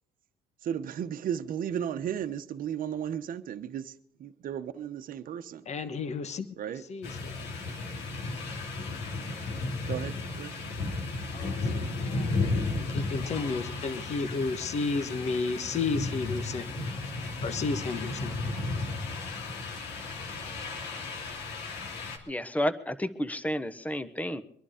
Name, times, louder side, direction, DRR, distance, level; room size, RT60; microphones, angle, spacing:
voice 1, 0.6-5.7 6.6-6.9 9.9-10.5, right 9 dB, 55° right, 1.1 m, -35 dB
voice 2, 5.7-6.5 6.9-7.1 11.3-16.8 17.4-18.5, left 4 dB, 40° left, 1.2 m, -33 dB
sound 1, 7.0-22.2, left 3 dB, 85° left, 2.9 m, -34 dB
voice 3, 22.3-24.4, equal, 10° left, 1.1 m, -31 dB
23.5 x 11.0 x 5.1 m
cardioid pair, 110°, 17 cm